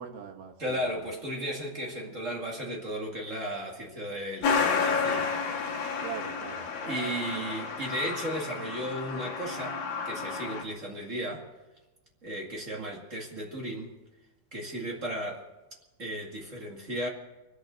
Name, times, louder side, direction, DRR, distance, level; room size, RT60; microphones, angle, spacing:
voice 1, 0.0-0.8 6.0-7.4, right 8 dB, 80° right, 3 dB, 3.4 m, -42 dB
voice 2, 0.6-5.3 6.9-11.5 12.2-14.0 14.5-15.5 16.0-17.1, equal, 25° right, -1 dB, 1.9 m, -35 dB
Truck, 4.4-10.6, left 5 dB, 75° left, 3.6 m, -31 dB
24.5 x 8.2 x 6.5 m, 1.0 s
omnidirectional pair, 4.2 m